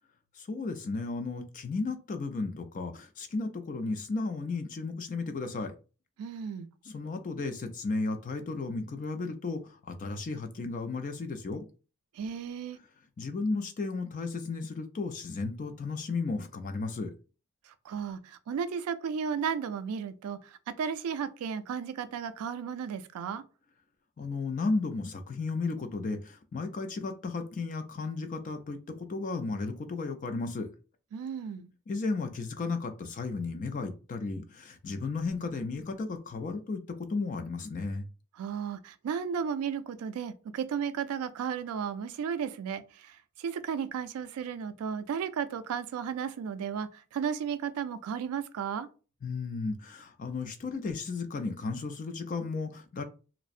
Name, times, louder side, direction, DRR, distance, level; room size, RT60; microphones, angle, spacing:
voice 1, 0.4-5.7 6.8-11.7 13.2-17.1 24.2-30.7 31.9-38.1 49.2-53.0, left 3 dB, 35° left, 0.3 m, -34 dB
voice 2, 6.2-6.7 12.2-12.8 17.7-23.4 31.1-31.7 38.4-48.9, right 7 dB, 90° right, 0.3 m, -34 dB
2.5 x 2.0 x 2.4 m
head